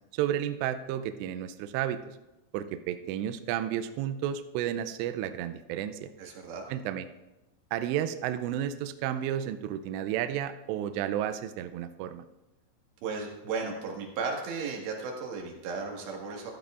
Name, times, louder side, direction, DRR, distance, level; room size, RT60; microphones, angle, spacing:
voice 1, 0.1-2.0 2.5-6.1 6.7-7.1 7.7-12.2, right 11 dB, 90° right, 10 dB, 2.5 m, -32 dB
voice 2, 6.2-6.7 13.0-16.5, right 4 dB, 70° right, 0 dB, 3.8 m, -35 dB
15.5 x 13.0 x 2.5 m, 1.0 s
omnidirectional pair, 5.6 m